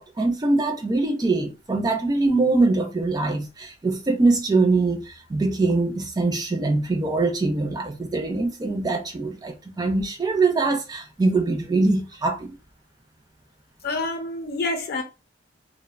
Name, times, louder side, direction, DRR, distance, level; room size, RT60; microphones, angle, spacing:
voice 1, 0.0-12.5, right 3 dB, 20° right, 0.3 m, -23 dB
voice 2, 13.8-15.0, left 2 dB, 55° left, 0.5 m, -27 dB
2.7 x 2.0 x 2.4 m
head